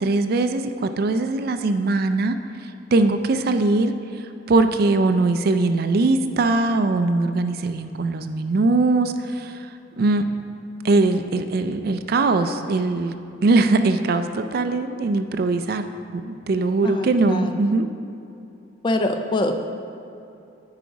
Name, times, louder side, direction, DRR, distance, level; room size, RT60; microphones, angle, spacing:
voice 1, 0.0-2.4 2.9-3.9 4.5-9.5 10.0-10.2 10.8-13.2 13.4-15.9 16.1-17.9, right 3 dB, 50° right, 9 dB, 0.4 m, -21 dB
voice 2, 16.8-17.6 18.8-19.6, left 1 dB, 25° left, 6 dB, 0.4 m, -24 dB
9.1 x 4.9 x 4.7 m, 2.7 s
head